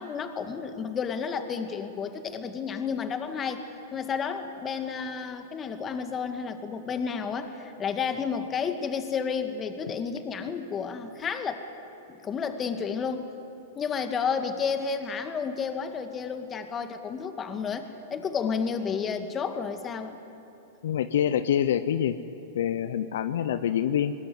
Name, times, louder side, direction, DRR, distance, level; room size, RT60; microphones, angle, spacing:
voice 1, 0.0-3.6 3.9-11.6 12.1-13.3 13.8-20.2, left 6 dB, 25° left, 8 dB, 2.1 m, -31 dB
voice 2, 20.8-22.2 22.5-24.1, left 10 dB, 70° left, 12 dB, 0.9 m, -26 dB
21.0 x 21.0 x 9.5 m, 3.0 s
hypercardioid pair, 115°, 0 cm